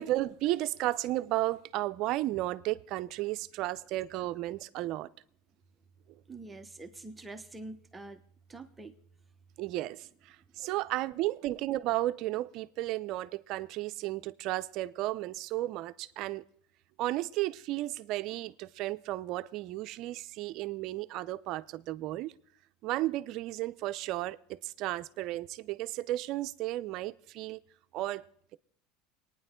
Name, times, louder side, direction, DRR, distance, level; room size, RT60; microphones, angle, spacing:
voice 1, 0.0-5.1 9.6-16.4 17.0-22.3 22.8-27.6 27.9-28.2, right 16 dB, 60° right, 0.6 m, -33 dB
voice 2, 6.3-8.2 8.5-8.9, right 2 dB, 15° right, 1.1 m, -45 dB
24.5 x 9.8 x 3.8 m
supercardioid pair, 115°, 0 cm